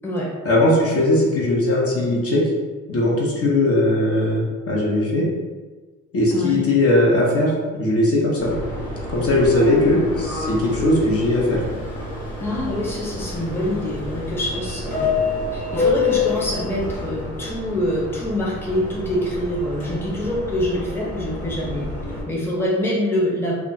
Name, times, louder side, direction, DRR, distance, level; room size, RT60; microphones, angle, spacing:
voice 1, 0.4-2.4 2.9-5.2 6.1-7.5 7.8-8.6 9.1-11.6, left 1 dB, 50° left, -3 dB, 0.9 m, -19 dB
Subway metro underground, 8.4-22.2, left 3 dB, 70° left, 1.1 m, -28 dB
voice 2, 12.4-15.1 15.5-21.9 22.3-23.5, equal, 10° left, -5 dB, 0.7 m, -25 dB
2.4 x 2.2 x 3.9 m, 1.3 s
cardioid pair, 90°, 30 cm